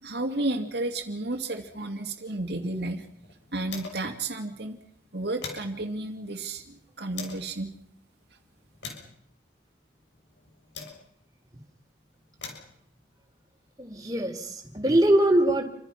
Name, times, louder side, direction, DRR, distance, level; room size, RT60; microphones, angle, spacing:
voice 1, 0.0-3.1 3.5-4.8 5.1-7.7, right 2 dB, 65° right, 4 dB, 2.5 m, -32 dB
sound 1, 2.4-4.2 4.5-4.6 5.0-7.5 8.1-11.3 12.1-14.3, left 5 dB, 90° left, 6.7 m, -45 dB
voice 2, 13.8-15.7, right 1 dB, 20° right, 3 dB, 3.8 m, -23 dB
29.5 x 25.5 x 5.9 m, 0.69 s
head